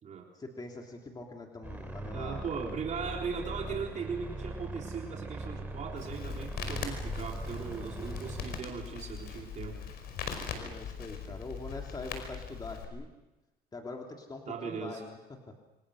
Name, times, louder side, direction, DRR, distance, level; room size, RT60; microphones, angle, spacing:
voice 1, 0.3-2.5 3.7-3.9 9.6-9.8 10.5-13.1 13.7-15.5, left 2 dB, 25° left, 1 dB, 3.2 m, -44 dB
sound 1, 1.6-8.6, right 2 dB, 10° right, 4.3 m, -41 dB
voice 2, 2.1-9.8 14.5-15.0, right 6 dB, 45° right, 0 dB, 3.8 m, -38 dB
Crackle, 6.0-12.8, left 6 dB, 70° left, 5.2 m, -40 dB
27.5 x 25.5 x 6.5 m, 1.0 s
cardioid pair, 110°, 17 cm